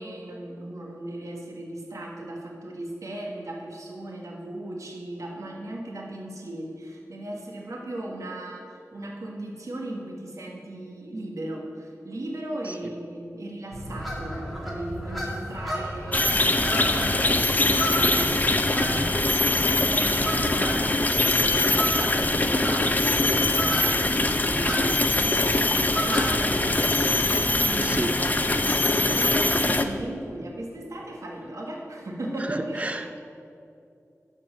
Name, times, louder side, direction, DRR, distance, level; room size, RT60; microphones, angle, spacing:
voice 1, 0.0-33.2, right 1 dB, 75° right, -1 dB, 1.6 m, -37 dB
sound 1, 13.7-27.5, equal, ahead, 2.3 m, -33 dB
sound 2, 16.1-29.8, left 2 dB, 30° left, 0.6 m, -23 dB
voice 2, 27.8-28.3 32.5-33.0, right 1 dB, 25° right, 9 dB, 0.6 m, -30 dB
12.5 x 4.5 x 7.6 m, 2.6 s
wide cardioid pair, 80°, 6 cm